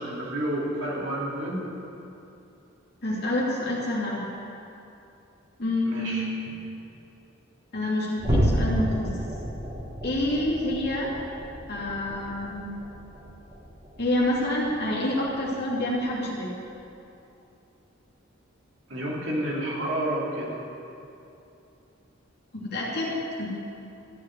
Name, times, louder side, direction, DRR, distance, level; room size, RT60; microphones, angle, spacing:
voice 1, 0.0-1.7 5.8-6.3 18.9-20.5, right 1 dB, 65° right, -5 dB, 2.8 m, -30 dB
voice 2, 3.0-4.3 5.6-6.4 7.7-9.1 10.0-11.1 11.7-12.7 14.0-16.5 22.5-23.5, left 1 dB, 50° left, -5 dB, 2.6 m, -27 dB
sound 1, 8.2-14.9 15.2-15.5 15.9-16.1 16.6-16.8, equal, 30° right, 3.0 m, -31 dB
14.0 x 5.6 x 9.0 m, 2.8 s
head